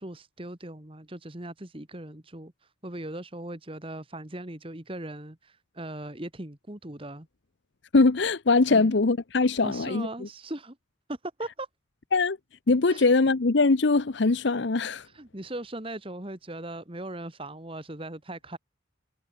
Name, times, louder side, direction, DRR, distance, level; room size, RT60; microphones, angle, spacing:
voice 1, 0.0-7.3 8.7-8.9 9.6-10.8 11.1-11.7 12.9-13.1 15.0-18.6, right 1 dB, 25° right, 1.7 m, -39 dB
voice 2, 7.9-10.1 12.1-12.4 12.7-15.1, left 3 dB, 60° left, 0.7 m, -22 dB
head